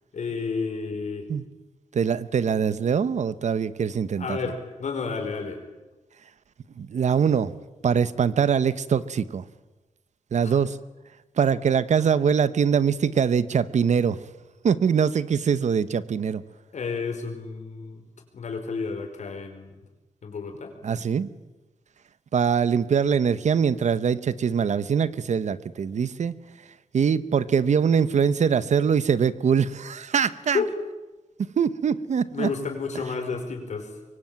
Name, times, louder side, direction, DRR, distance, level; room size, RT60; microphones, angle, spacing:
voice 1, 0.1-1.3 4.2-5.6 10.4-10.6 16.7-18.0 18.3-19.8 20.2-20.7 30.5-30.8 32.3-33.9, left 4 dB, 70° left, 4 dB, 5.4 m, -31 dB
voice 2, 1.9-4.4 6.8-7.6 7.8-9.4 10.3-10.8 11.4-14.2 14.6-16.4 20.8-21.3 22.3-26.3 26.9-30.6 31.6-32.5, right 7 dB, 70° right, 15 dB, 1.0 m, -23 dB
24.0 x 24.0 x 9.1 m, 1.1 s
wide cardioid pair, 165°, 13 cm